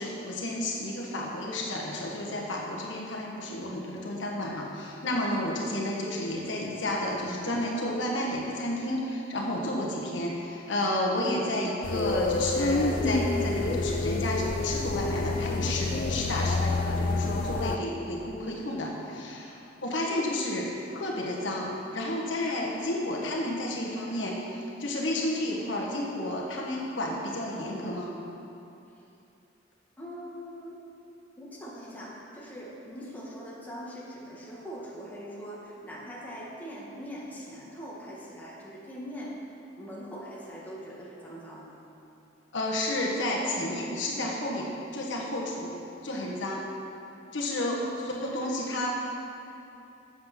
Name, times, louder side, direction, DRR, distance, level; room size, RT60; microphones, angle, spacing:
voice 1, 0.0-28.1 42.5-45.8 46.0-46.6 47.3-47.8 48.1-48.9, left 1 dB, 70° left, -2 dB, 1.3 m, -31 dB
sound 1, 11.8-17.8, left 2 dB, 45° left, 0.5 m, -28 dB
voice 2, 30.0-30.8 31.4-39.4 39.8-41.8 47.6-47.8, equal, 10° left, -6 dB, 1.7 m, -42 dB
7.9 x 7.7 x 5.9 m, 2.8 s
head